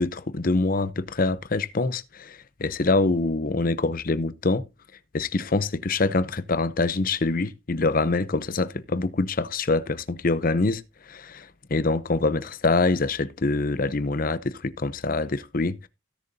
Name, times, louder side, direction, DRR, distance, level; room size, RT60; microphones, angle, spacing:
voice 1, 0.0-4.6 5.1-15.9, left 3 dB, 45° left, 0.6 m, -25 dB
16.5 x 6.8 x 2.7 m
head